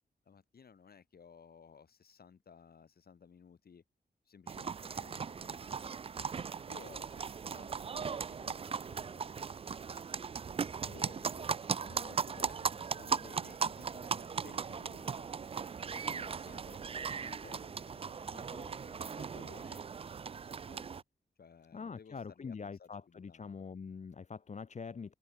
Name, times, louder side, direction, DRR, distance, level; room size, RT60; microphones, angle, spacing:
voice 1, 0.3-3.8 4.3-6.0 6.6-9.3 10.7-15.3 15.9-19.9 20.4-21.0 21.4-23.5, left 6 dB, 60° left, 3.4 m, -57 dB
sound 1, 4.5-21.0, right 6 dB, 35° right, 0.3 m, -38 dB
voice 2, 21.7-25.1, left 5 dB, 40° left, 1.0 m, -44 dB
open air
wide cardioid pair, 170°, 18 cm